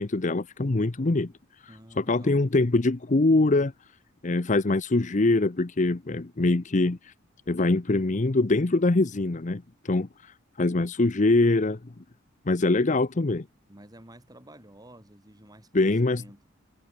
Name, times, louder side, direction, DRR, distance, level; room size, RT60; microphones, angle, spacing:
voice 1, 0.0-1.3 2.0-3.7 4.2-7.1 7.5-10.1 10.6-11.8 12.5-13.5 15.7-16.2, left 2 dB, 40° left, 0.7 m, -23 dB
voice 2, 1.7-2.4 13.7-16.5, right 1 dB, 20° right, 7.4 m, -51 dB
head